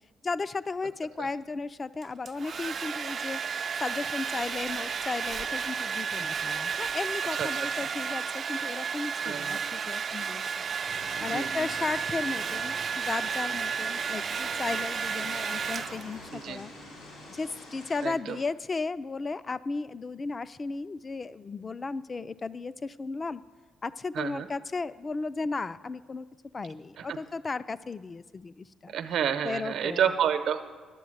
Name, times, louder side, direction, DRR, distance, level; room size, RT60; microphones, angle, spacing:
voice 1, 0.2-3.4 3.8-10.8 11.2-16.7 17.3-23.4 23.8-26.3 26.5-28.9 29.4-30.2, left 3 dB, 30° left, 15 dB, 0.4 m, -35 dB
Domestic sounds home sounds, 2.0-16.3, right 6 dB, 50° right, 0.4 m, -32 dB
voice 2, 9.2-9.6 11.2-11.7 16.3-16.6 18.0-18.4 24.1-24.5 27.0-27.1 28.9-30.6, right 8 dB, 75° right, 8 dB, 0.9 m, -29 dB
sound 1, 10.8-18.1, left 2 dB, 85° left, 3.4 m, -46 dB
11.5 x 7.3 x 7.8 m, 1.5 s
cardioid pair, 90°, 0 cm